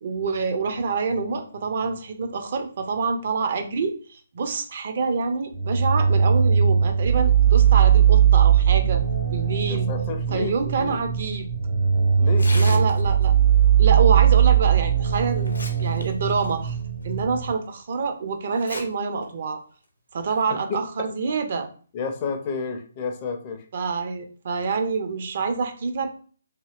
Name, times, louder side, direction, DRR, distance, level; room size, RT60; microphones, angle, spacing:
voice 1, 0.0-9.0 9.3-9.9 10.3-11.5 12.5-13.3 13.8-15.5 15.8-16.8 17.0-19.6 20.1-21.7 23.7-26.2, right 5 dB, 45° right, 6 dB, 0.4 m, -26 dB
sound 1, 5.5-17.5, right 8 dB, 65° right, 1.1 m, -19 dB
voice 2, 9.7-11.0 12.2-12.8 21.9-23.6, left 5 dB, 30° left, 4 dB, 0.4 m, -31 dB
Tearing, 12.3-13.3 14.7-14.8 15.3-16.0 16.4-16.5 17.2-17.3 18.5-18.8 19.2-19.3 20.2-20.4, left 2 dB, 75° left, 0.7 m, -36 dB
2.8 x 2.6 x 2.3 m, 0.41 s
figure-of-eight pair, 135°, 0 cm